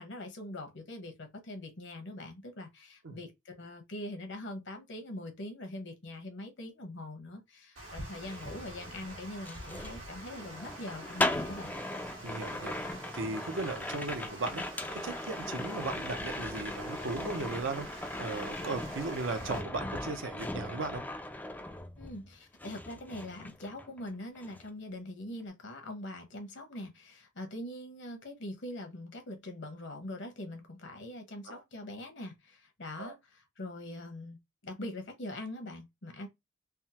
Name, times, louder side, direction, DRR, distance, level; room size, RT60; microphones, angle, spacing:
voice 1, 0.0-11.7 22.0-34.4 34.6-36.3, left 1 dB, 65° left, 0.9 m, -43 dB
Water, 7.7-19.6, right 1 dB, 90° right, 1.4 m, -47 dB
sound 1, 8.2-22.3 22.6-24.1 24.4-24.7, left 1 dB, 10° left, 0.3 m, -38 dB
voice 2, 12.2-21.0 31.5-31.6 33.0-33.1, right 3 dB, 70° right, 0.6 m, -37 dB
3.5 x 2.0 x 2.8 m
head